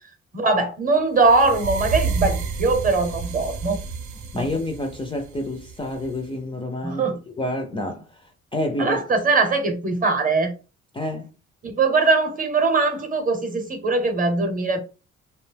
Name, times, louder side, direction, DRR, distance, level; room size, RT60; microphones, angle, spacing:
voice 1, 0.3-3.8 4.3-4.4 6.8-7.2 8.8-10.5 11.6-14.8, right 3 dB, 25° right, 0.7 m, -21 dB
sound 1, 1.2-6.2, right 5 dB, 75° right, 0.6 m, -30 dB
voice 2, 4.3-9.0 10.9-11.3, left 1 dB, 15° left, 0.4 m, -29 dB
2.5 x 2.1 x 3.3 m
cardioid pair, 90°, 30 cm